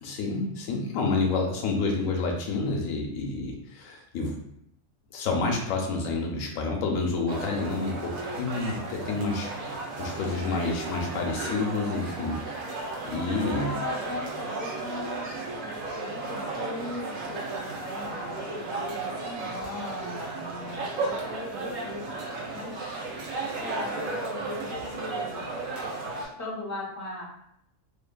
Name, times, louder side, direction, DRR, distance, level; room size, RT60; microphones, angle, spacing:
voice 1, 0.0-4.4 5.1-12.6 13.0-13.7, left 3 dB, 90° left, 1 dB, 1.0 m, -29 dB
sound 1, 7.3-26.3, right 3 dB, 80° right, 1.0 m, -34 dB
voice 2, 13.3-23.0 23.6-25.5 26.1-27.2, left 2 dB, 20° left, -7 dB, 0.5 m, -39 dB
2.7 x 2.5 x 2.2 m, 0.74 s
omnidirectional pair, 1.4 m